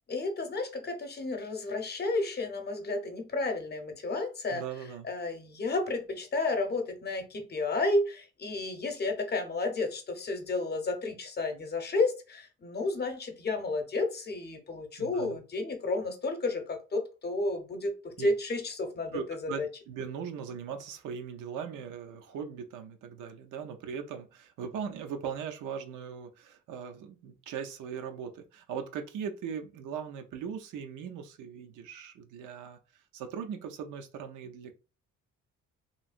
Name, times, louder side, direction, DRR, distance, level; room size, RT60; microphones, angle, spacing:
voice 1, 0.1-4.6 5.0-19.7, left 2 dB, 35° left, 0.7 m, -32 dB
voice 2, 4.5-5.1 15.0-15.4 18.2-18.3 19.1-32.8 33.1-34.7, right 7 dB, 85° right, 0.6 m, -39 dB
3.1 x 2.6 x 2.4 m
cardioid pair, 90°, 30 cm